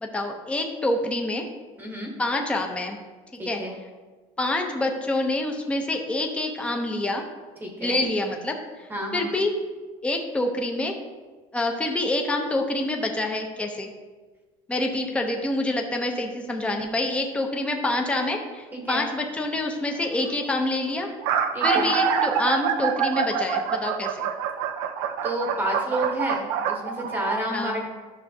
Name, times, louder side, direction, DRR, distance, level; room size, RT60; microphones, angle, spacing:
voice 1, 0.0-1.4 2.2-3.0 3.5-3.6 4.4-7.2 7.8-9.5 10.0-11.0 11.5-13.9 14.7-21.1 21.6-24.3 27.5-27.7, left 2 dB, 10° left, 3 dB, 0.6 m, -27 dB
voice 2, 1.8-2.1 3.4-3.8 7.6-8.0 8.9-9.3 18.7-19.1 21.5-21.9 25.2-27.9, right 1 dB, 15° right, 0 dB, 1.0 m, -30 dB
sound 1, 19.1-19.4 20.3-20.4 20.6-20.7 21.0-27.4, right 7 dB, 90° right, 0.5 m, -26 dB
10.0 x 6.2 x 2.7 m, 1.3 s
cardioid pair, 155°, 14 cm